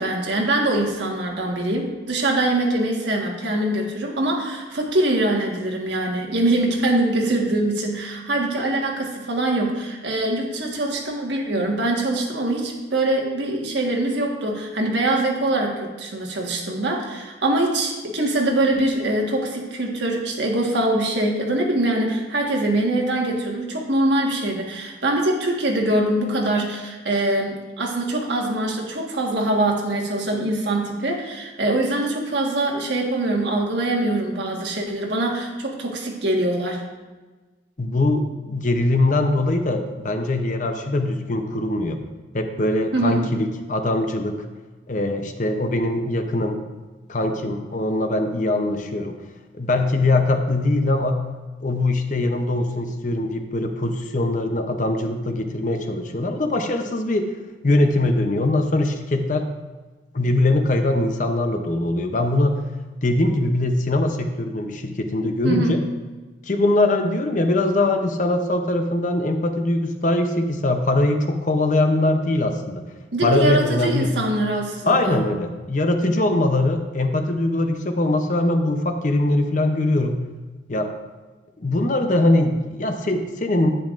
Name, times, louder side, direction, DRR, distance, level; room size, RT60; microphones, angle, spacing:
voice 1, 0.0-36.8 42.9-43.3 65.4-65.8 73.1-75.2, right 1 dB, 70° right, 0 dB, 1.5 m, -23 dB
voice 2, 37.8-42.0 42.3-44.4 44.9-46.6 47.1-49.2 49.5-51.2 51.6-57.3 57.6-59.5 60.1-62.6 63.0-65.8 66.5-72.8 73.2-74.1 74.9-80.2 80.7-80.9 81.6-83.7, left 2 dB, 40° left, 6 dB, 0.7 m, -22 dB
10.5 x 8.6 x 2.5 m, 1.3 s
head